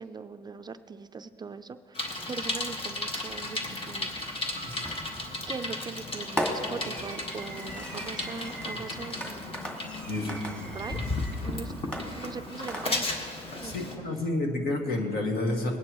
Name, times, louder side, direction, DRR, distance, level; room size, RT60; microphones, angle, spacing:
voice 1, 0.0-3.6 3.8-4.2 5.5-9.7 10.7-11.0 11.4-13.1 13.6-13.8, right 5 dB, 25° right, 9 dB, 0.4 m, -40 dB
Bicycle, 1.9-14.0, left 2 dB, 30° left, 1.5 m, -35 dB
sound 1, 4.6-7.1, right 2 dB, 50° left, 1.7 m, -51 dB
Fireworks, 4.8-5.3 6.4-11.4 11.9-13.3, equal, 5° left, 2.0 m, -37 dB
voice 2, 10.1-10.4 13.6-15.8, left 2 dB, 65° left, 2 dB, 1.9 m, -29 dB
20.5 x 9.6 x 3.0 m, 2.3 s
cardioid pair, 110°, 17 cm